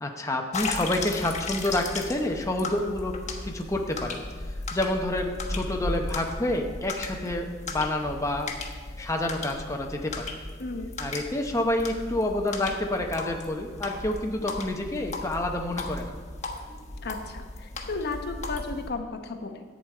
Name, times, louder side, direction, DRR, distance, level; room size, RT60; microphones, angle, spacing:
voice 1, 0.0-4.2 4.5-8.5 9.0-10.3 11.0-16.2, left 1 dB, 15° left, 2 dB, 0.8 m, -28 dB
sound 1, 0.5-18.9, left 3 dB, 35° left, 1.2 m, -36 dB
voice 2, 17.0-19.6, left 3 dB, 55° left, 5 dB, 0.9 m, -34 dB
11.0 x 5.2 x 8.3 m, 1.5 s
head